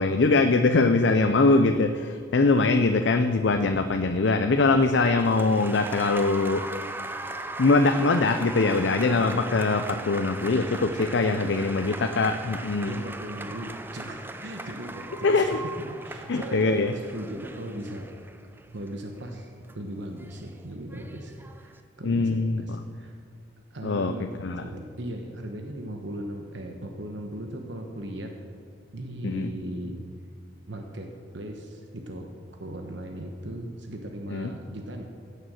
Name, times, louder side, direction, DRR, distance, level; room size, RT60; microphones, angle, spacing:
voice 1, 0.0-6.7 7.6-13.0 15.2-15.6 16.3-16.9 22.0-22.8 23.8-24.1 24.4-24.6 29.2-29.5 34.3-34.5, left 3 dB, 65° left, 7 dB, 0.5 m, -22 dB
Applause, 4.7-21.8, right 2 dB, 10° right, 0.5 m, -39 dB
voice 2, 12.8-15.6 15.9-18.1 18.7-23.2 23.7-24.3 24.6-28.3 28.9-30.0 30.7-35.0, right 1 dB, 70° right, 3 dB, 1.1 m, -38 dB
16.0 x 6.7 x 6.4 m, 2.2 s
head